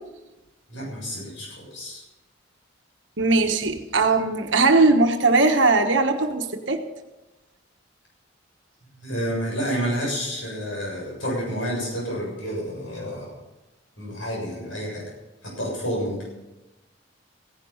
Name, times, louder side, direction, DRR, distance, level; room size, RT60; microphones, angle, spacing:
voice 1, 0.7-2.0 9.0-13.3 14.0-15.0 15.4-16.2, equal, 75° left, -3 dB, 7.4 m, -29 dB
voice 2, 3.2-6.8, right 3 dB, 70° right, 5 dB, 1.3 m, -19 dB
16.0 x 10.5 x 7.1 m, 1.0 s
head